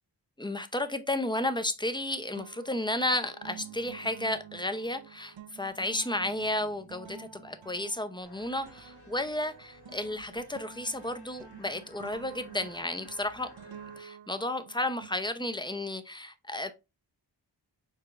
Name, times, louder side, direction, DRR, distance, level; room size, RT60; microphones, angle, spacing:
voice 1, 0.4-13.5 14.0-16.7, left 1 dB, 10° left, 0.6 m, -33 dB
sound 1, 1.6-2.0 2.4-15.8, right 8 dB, 80° right, 0.8 m, -50 dB
sound 2, 8.2-14.0, left 2 dB, 60° left, 1.4 m, -56 dB
4.8 x 4.3 x 2.4 m
wide cardioid pair, 80°, 45 cm